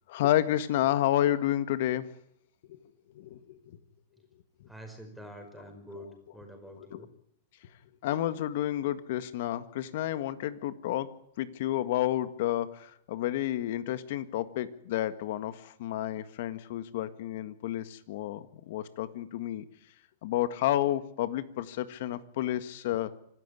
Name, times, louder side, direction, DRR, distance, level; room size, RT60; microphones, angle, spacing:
voice 1, 0.1-2.1 3.2-3.6 6.9-7.0 8.0-11.1 11.4-19.6 20.2-23.1, left 13 dB, 60° left, 12 dB, 1.8 m, -30 dB
voice 2, 4.7-7.1, equal, ahead, 4 dB, 5.3 m, -47 dB
26.0 x 12.5 x 10.0 m, 0.72 s
supercardioid pair, 145°, 0 cm